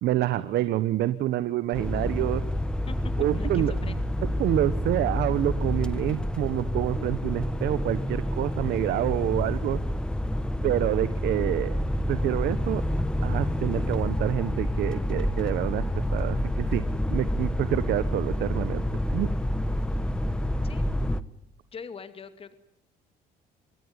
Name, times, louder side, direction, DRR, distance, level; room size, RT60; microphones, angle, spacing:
voice 1, 0.0-2.4 3.2-4.0 4.4-9.8 10.6-11.8 12.1-12.8 13.2-15.9 16.1-16.8 17.1-18.8 19.1-19.3, right 14 dB, 75° right, 14 dB, 1.2 m, -27 dB
sound 1, 1.7-21.2, left 1 dB, 5° left, 1.3 m, -28 dB
voice 2, 2.9-4.0 20.6-20.8 21.7-22.5, left 5 dB, 35° left, 11 dB, 2.2 m, -42 dB
26.0 x 22.0 x 9.7 m, 0.73 s
cardioid pair, 110°, 17 cm